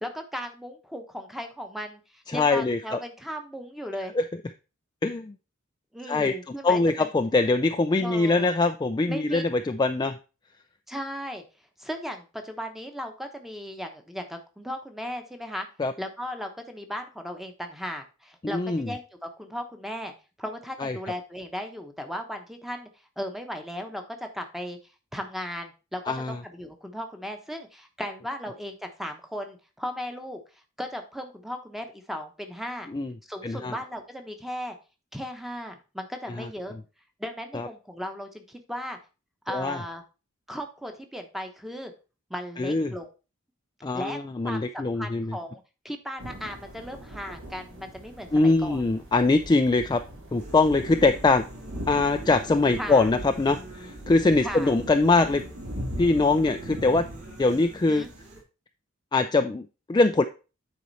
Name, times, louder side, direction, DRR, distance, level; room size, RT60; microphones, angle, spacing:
voice 1, 0.0-4.1 5.9-7.1 8.0-8.5 9.1-9.4 10.9-11.4 11.8-15.7 16.0-20.1 20.4-22.9 23.2-24.8 25.1-30.4 30.8-32.9 33.3-34.8 35.1-36.7 37.2-39.0 39.5-40.0 40.5-41.9 42.3-43.1 43.9-44.2 44.4-48.8 52.8-53.1 54.4-54.7 57.8-58.1, equal, ahead, 5 dB, 1.0 m, -36 dB
voice 2, 2.3-3.0 4.1-4.2 5.0-5.3 6.1-6.3 6.6-10.2 15.8-15.9 18.4-18.9 20.8-21.0 26.1-26.4 32.9-33.1 33.4-33.8 36.4-36.5 37.5-37.7 39.5-39.8 42.6-42.9 43.8-45.4 48.3-50.0 50.3-51.4 51.9-55.4 56.0-57.1 57.4-58.1 59.1-60.2, left 3 dB, 20° left, 7 dB, 0.3 m, -23 dB
sound 1, 46.2-58.4, equal, 65° right, 2.7 m, -40 dB
sound 2, 50.4-58.4, right 1 dB, 40° right, 2.7 m, -46 dB
9.3 x 4.3 x 4.1 m, 0.32 s
head